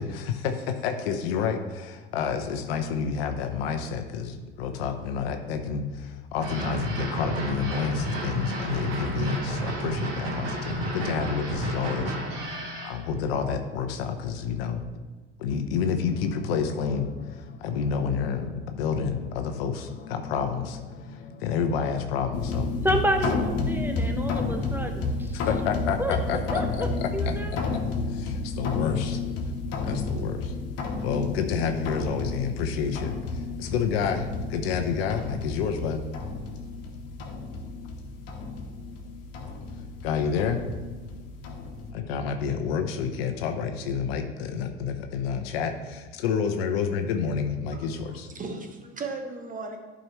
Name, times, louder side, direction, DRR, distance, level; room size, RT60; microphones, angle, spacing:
voice 1, 0.0-12.2 12.4-12.5 12.8-14.8 15.4-20.8 21.1-22.9 25.3-27.4 27.7-27.8 28.1-29.2 29.8-30.6 31.0-36.0 40.0-40.6 41.9-48.3, left 6 dB, 70° left, 6 dB, 0.9 m, -29 dB
sound 1, 6.4-13.0, right 1 dB, 75° right, 2.3 m, -31 dB
sound 2, 16.1-23.5, left 5 dB, 30° left, 0.7 m, -46 dB
sound 3, 22.3-41.9, left 3 dB, 50° left, 1.6 m, -31 dB
voice 2, 22.8-25.4 26.0-26.7 27.1-27.5, equal, 5° right, 5 dB, 0.8 m, -29 dB
voice 3, 47.7-49.8, right 3 dB, 25° right, 4 dB, 1.2 m, -37 dB
11.5 x 5.1 x 3.1 m, 1.3 s
hypercardioid pair, 70°, 31 cm